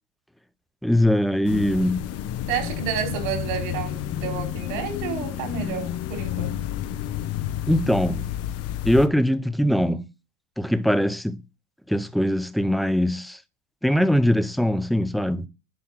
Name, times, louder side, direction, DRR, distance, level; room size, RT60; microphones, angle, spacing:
voice 1, 0.8-2.1 7.7-8.2 8.8-10.0 10.6-11.4 11.9-13.4 13.8-15.5, equal, ahead, 0.5 m, -21 dB
sound 1, 1.4-9.1, left 11 dB, 45° left, 1.0 m, -30 dB
voice 2, 2.5-6.6, right 7 dB, 65° right, 4.3 m, -30 dB
11.5 x 3.8 x 6.5 m
supercardioid pair, 135°, 36 cm